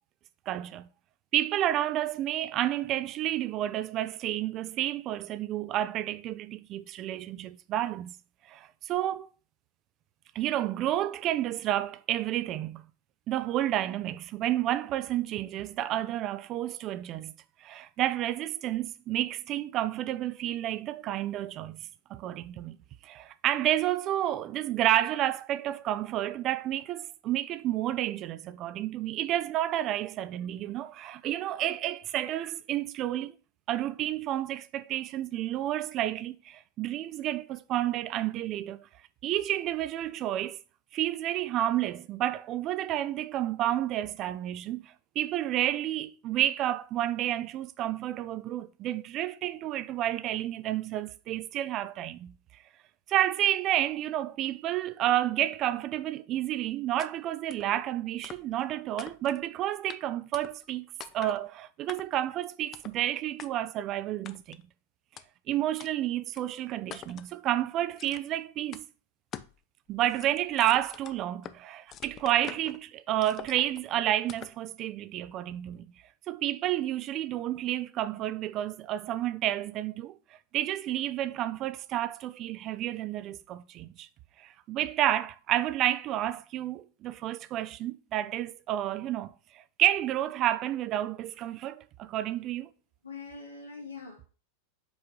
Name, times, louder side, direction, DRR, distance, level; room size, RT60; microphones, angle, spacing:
voice 1, 0.5-0.9 1.3-8.2 8.5-9.3 10.3-12.8 13.3-17.3 17.6-21.8 22.1-22.8 23.0-33.3 33.7-38.9 39.2-40.6 40.9-52.3 53.1-60.9 61.1-64.6 65.5-68.9 69.9-75.9 76.3-80.2 80.5-84.1 84.4-92.7, right 13 dB, 35° right, 0.3 m, -30 dB
sound 1, 57.0-57.1 57.5-57.7 58.2-58.7 59.0-59.5 59.9-60.0 60.3-60.7 61.0-61.4 61.9-62.3 62.7-63.0 63.4-63.5 64.3-64.6 65.2-65.3 65.8-65.9 66.4-66.5 66.9-67.3 68.0-68.4 68.7-68.9 69.3-69.6 69.9-71.6 71.9-72.8 73.2-73.8 74.3-74.6, left 10 dB, 30° left, 0.4 m, -45 dB
voice 2, 93.0-94.3, left 4 dB, 80° left, 2.1 m, -43 dB
4.9 x 3.7 x 5.2 m
figure-of-eight pair, 90°, 0 cm